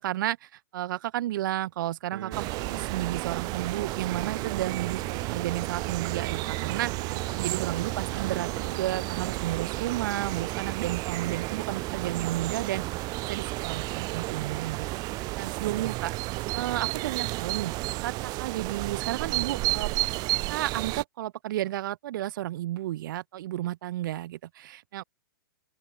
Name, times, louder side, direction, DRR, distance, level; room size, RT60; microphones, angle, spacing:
voice 1, 0.0-2.5 2.7-12.8 13.2-14.9 15.4-16.1 16.5-17.7 18.0-19.9 20.5-25.0, right 14 dB, 60° right, 1.8 m, -32 dB
sound 1, 2.1-10.1, right 9 dB, 75° right, 6.9 m, -41 dB
sound 2, 2.3-21.0, right 22 dB, 30° right, 1.5 m, -32 dB
open air
hypercardioid pair, 145°, 12 cm